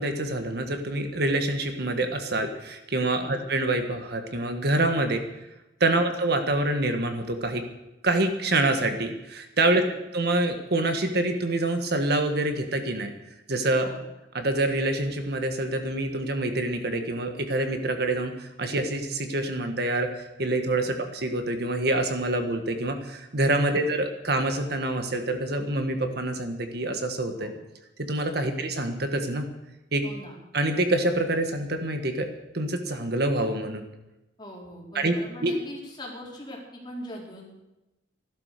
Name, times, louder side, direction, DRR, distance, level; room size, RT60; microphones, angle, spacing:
voice 1, 0.0-5.2 5.8-7.6 8.0-9.8 10.1-13.1 13.5-13.9 14.3-27.5 28.0-29.5 29.9-30.0 30.5-32.3 32.5-33.8 35.0-35.1 35.4-35.6, right 2 dB, 60° right, 6 dB, 1.6 m, -26 dB
voice 2, 9.6-10.0 13.8-14.0 20.8-21.0 23.6-23.8 27.4-27.6 28.4-28.6 30.0-30.3 34.4-37.5, equal, 25° left, -2 dB, 4.1 m, -42 dB
15.0 x 12.0 x 6.7 m, 0.97 s
head